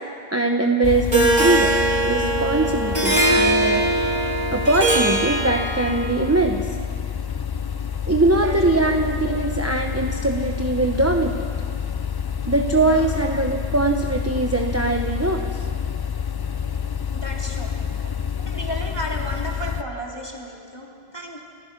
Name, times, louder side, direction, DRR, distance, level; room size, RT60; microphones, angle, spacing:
voice 1, 0.3-3.8 4.5-6.7 8.1-11.5 12.5-15.7, right 2 dB, 15° right, 3 dB, 0.9 m, -21 dB
sound 1, 0.8-19.8, left 7 dB, 40° left, 0.3 m, -28 dB
Harp, 1.1-6.1, right 2 dB, 40° right, 2.4 m, -21 dB
voice 2, 12.8-13.1 17.1-17.7 18.4-21.4, equal, 20° left, -1 dB, 2.9 m, -33 dB
29.5 x 15.0 x 6.0 m, 2.3 s
omnidirectional pair, 1.1 m